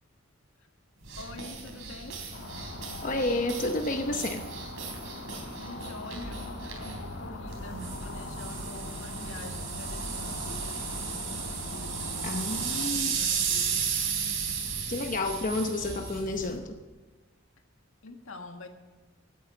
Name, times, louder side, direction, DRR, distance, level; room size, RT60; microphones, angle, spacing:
sound 1, 1.0-16.6, right 6 dB, 70° right, 3.6 m, -35 dB
voice 1, 1.2-2.3 5.6-10.8 11.6-13.9 18.0-18.7, left 2 dB, 80° left, 6 dB, 1.5 m, -46 dB
sound 2, 2.3-12.9, left 2 dB, 65° left, 1.5 m, -41 dB
voice 2, 3.0-4.5 12.2-13.1 14.9-16.8, left 2 dB, 40° left, 5 dB, 0.9 m, -30 dB
15.5 x 9.4 x 8.8 m, 1.3 s
head